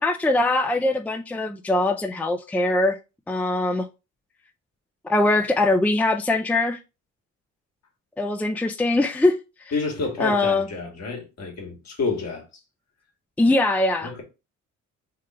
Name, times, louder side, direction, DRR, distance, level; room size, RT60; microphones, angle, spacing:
voice 1, 0.0-3.0 3.3-3.9 5.0-6.8 8.2-9.4 10.2-10.7 13.4-14.1, left 2 dB, 5° left, 0.4 m, -22 dB
voice 2, 9.7-12.4 14.0-14.2, left 4 dB, 60° left, 2.1 m, -29 dB
3.8 x 3.2 x 4.4 m
cardioid pair, 90°, 30 cm